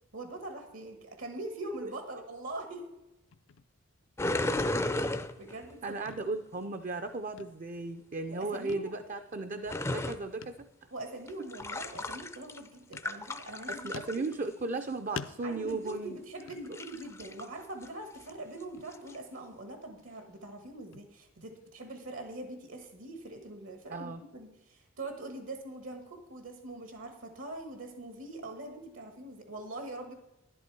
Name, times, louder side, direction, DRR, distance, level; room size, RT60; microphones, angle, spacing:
voice 1, 0.1-2.9 4.5-6.1 8.3-8.9 10.9-14.2 15.4-30.1, right 2 dB, 75° right, 6 dB, 1.4 m, -43 dB
sound 1, 3.3-4.1 4.4-4.8 5.1-5.7 6.0-7.1 7.4-8.1 8.7-9.0 9.3-9.4 10.4-10.7 11.0-11.1 11.9-12.6 12.9-13.6 13.9-14.8 15.2-17.1 17.5-17.8 18.2-18.3 18.8-19.5 19.8-22.4, left 5 dB, 70° left, 0.5 m, -48 dB
sound 2, 4.2-5.7 9.7-10.2 11.3-12.7 13.0-14.3 15.7-15.9 16.5-17.5 17.8-17.9 18.2-18.3 18.9-19.2, left 2 dB, 15° left, 0.4 m, -34 dB
voice 2, 5.8-10.9 13.7-16.2 16.7-16.8 23.9-24.2, right 3 dB, 40° right, 9 dB, 0.5 m, -36 dB
11.0 x 11.0 x 4.6 m, 0.94 s
head